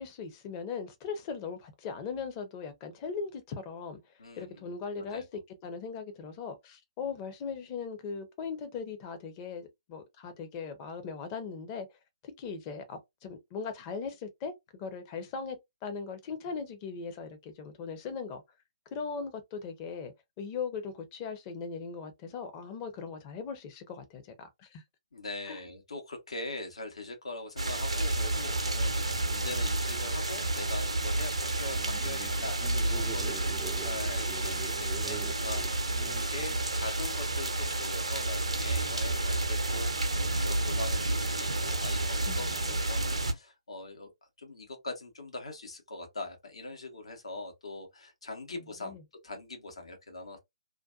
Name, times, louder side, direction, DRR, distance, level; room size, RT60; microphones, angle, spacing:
voice 1, 0.0-4.0 4.4-11.9 12.2-15.6 15.8-18.4 18.9-24.8 25.5-25.6 42.3-42.8 48.5-49.0, left 5 dB, 30° left, 0.7 m, -39 dB
voice 2, 4.2-5.3 25.1-44.1 44.4-49.0 49.2-50.4, left 2 dB, 75° left, 0.9 m, -42 dB
sound 1, 27.6-43.3, right 2 dB, 85° right, 0.6 m, -30 dB
sound 2, 31.7-36.7, right 6 dB, 10° right, 0.3 m, -45 dB
2.4 x 2.2 x 2.4 m
figure-of-eight pair, 130°, 3 cm